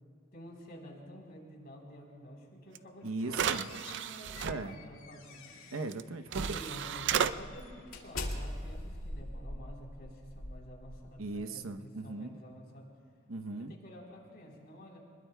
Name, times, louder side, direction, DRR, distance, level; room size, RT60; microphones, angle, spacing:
voice 1, 0.3-5.6 6.3-12.9 13.7-15.0, equal, 50° left, -2 dB, 3.7 m, -50 dB
sound 1, 2.7-2.8 3.3-4.5 5.9-6.0 6.3-7.3, right 8 dB, 60° right, 0.5 m, -32 dB
sound 2, 3.0-6.0 6.4-6.7 7.1-11.3, left 1 dB, 85° left, 2.1 m, -43 dB
voice 2, 3.0-3.7 4.4-4.8 5.7-6.4 11.2-12.4 13.3-13.7, right 3 dB, 80° right, 7 dB, 0.8 m, -38 dB
25.5 x 21.0 x 2.2 m, 2.5 s
head